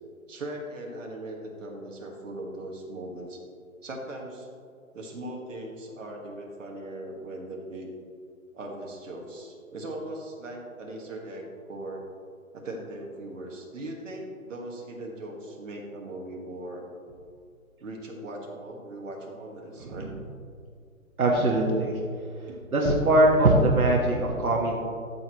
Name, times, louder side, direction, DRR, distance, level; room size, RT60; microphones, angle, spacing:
voice 1, 0.3-3.4 3.8-4.5 4.9-7.9 8.5-12.0 12.5-16.8 17.8-20.1 22.5-22.6, right 1 dB, 60° right, 0 dB, 1.9 m, -39 dB
voice 2, 21.2-22.0 22.7-24.8, right 1 dB, 85° right, -1 dB, 1.6 m, -22 dB
13.0 x 6.8 x 3.1 m, 2.3 s
hypercardioid pair, 150°, 42 cm